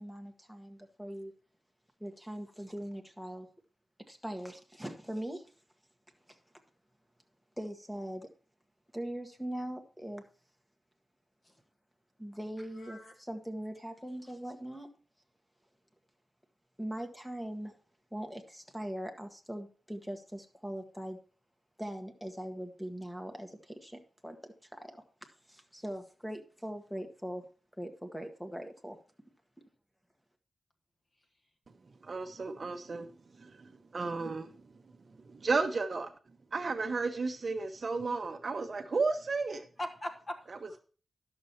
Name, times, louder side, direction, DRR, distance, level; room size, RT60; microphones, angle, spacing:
voice 1, 0.0-1.3 2.0-3.5 4.1-5.5 6.3-6.4 7.6-8.3 8.9-10.2 12.2-14.9 16.8-17.8 18.1-21.2 21.8-24.4 24.6-25.0 25.5-27.4 27.8-29.0, equal, 5° left, 5 dB, 1.4 m, -41 dB
voice 2, 12.7-13.1 39.8-40.8, left 1 dB, 25° left, 5 dB, 1.6 m, -41 dB
voice 3, 32.0-34.7 35.1-36.1 36.5-39.7, right 4 dB, 40° right, 7 dB, 0.9 m, -33 dB
11.0 x 6.8 x 4.3 m, 0.38 s
wide cardioid pair, 160°, 0 cm